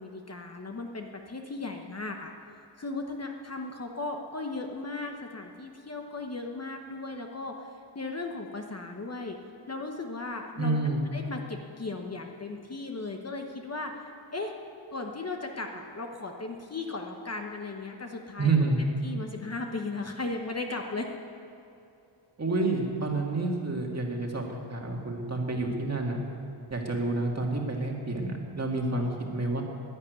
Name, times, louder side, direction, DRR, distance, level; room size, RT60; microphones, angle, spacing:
voice 1, 0.0-2.3 2.8-9.4 9.7-10.8 11.1-14.5 14.9-18.5 19.0-21.1 28.7-29.1, left 3 dB, 30° left, 3 dB, 1.0 m, -36 dB
voice 2, 10.6-11.0 18.4-18.8 22.4-26.2 26.7-29.6, right 3 dB, 30° right, 0 dB, 2.0 m, -29 dB
11.5 x 11.0 x 9.3 m, 2.8 s
wide cardioid pair, 150°, 48 cm